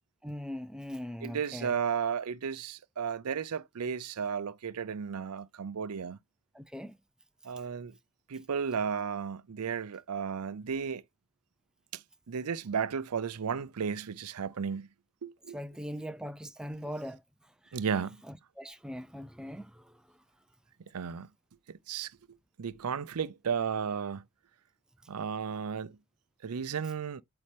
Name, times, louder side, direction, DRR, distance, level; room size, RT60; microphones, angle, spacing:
voice 1, 0.2-1.7 6.5-6.9 15.5-17.2 18.3-19.9, equal, 5° right, 0.4 m, -40 dB
voice 2, 1.2-6.2 7.4-7.9 8.3-11.0 11.9-12.0 12.3-14.9 15.2-15.6 17.7-18.2 20.9-21.3 21.9-22.1 22.6-24.2 25.1-26.0 26.4-27.2, right 6 dB, 85° right, 0.5 m, -34 dB
8.5 x 4.2 x 3.3 m
head